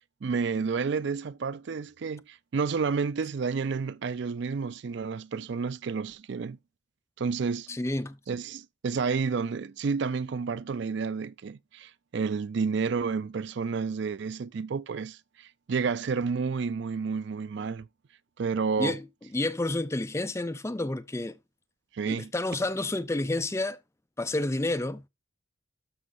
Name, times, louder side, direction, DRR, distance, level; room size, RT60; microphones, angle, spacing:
voice 1, 0.2-6.6 7.2-7.8 8.3-17.9 18.4-19.0 21.9-22.3, right 5 dB, 55° right, 0.4 m, -30 dB
voice 2, 7.7-8.2 18.8-19.1 19.3-21.3 22.1-23.8 24.2-25.1, left 2 dB, 15° left, 0.4 m, -30 dB
12.5 x 5.6 x 2.6 m
head